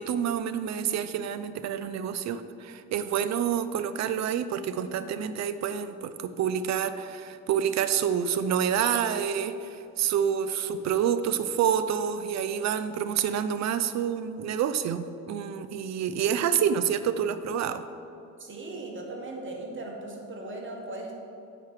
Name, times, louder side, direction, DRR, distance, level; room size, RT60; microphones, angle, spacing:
voice 1, 0.0-17.8, right 8 dB, 60° right, 12 dB, 0.5 m, -28 dB
voice 2, 18.4-21.1, right 2 dB, 40° right, -1 dB, 1.7 m, -38 dB
7.8 x 5.7 x 4.8 m, 2.6 s
cardioid pair, 90°, 30 cm